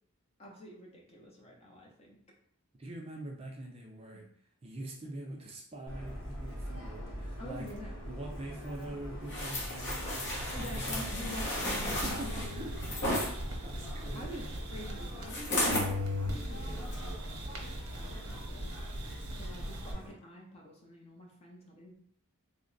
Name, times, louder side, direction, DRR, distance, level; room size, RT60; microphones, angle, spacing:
voice 1, 0.4-2.2 4.1-4.2 7.4-7.9 10.5-12.4 14.1-18.7 19.3-22.0, left 1 dB, 25° left, -1 dB, 0.6 m, -47 dB
voice 2, 2.8-4.2 4.6-7.7 8.0-11.1 11.9-12.7 13.6-14.3, right 1 dB, 25° right, 0 dB, 0.4 m, -44 dB
Subway metro underground, 5.9-20.1, equal, 70° left, 1.1 m, -43 dB
sound 1, 9.3-13.3 15.3-15.9 16.4-16.6, left 1 dB, 50° left, 0.9 m, -34 dB
sound 2, 10.4-15.4 15.7-19.9, left 1 dB, 65° right, 0.8 m, -39 dB
3.3 x 2.1 x 3.8 m, 0.65 s
head